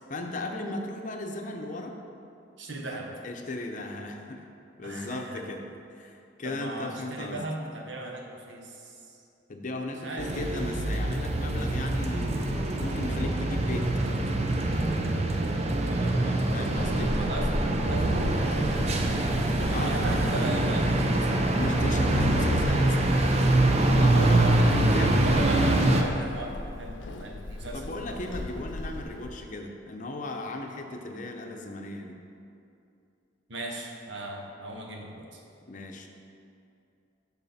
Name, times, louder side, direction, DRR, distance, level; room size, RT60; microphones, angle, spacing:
voice 1, 0.1-1.9 3.2-4.5 4.8-5.7 5.9-7.4 9.5-13.9 16.5-17.2 19.7-19.9 21.5-23.7 24.0-25.5 27.7-32.2 35.7-36.1, left 2 dB, 45° left, 3 dB, 0.7 m, -36 dB
voice 2, 2.6-3.1 4.8-5.4 6.4-9.2 10.0-10.3 15.8-16.5 17.2-18.6 19.6-21.6 22.3-22.4 23.4-23.6 24.1-25.0 25.2-28.6 33.5-35.4, right 1 dB, 70° right, 1 dB, 1.0 m, -37 dB
sound 1, 10.2-26.0, right 1 dB, 35° right, 0.6 m, -24 dB
Walk footsteps / Squeak, 16.8-29.4, left 1 dB, 80° left, 0.6 m, -38 dB
11.5 x 4.1 x 4.2 m, 2.6 s
head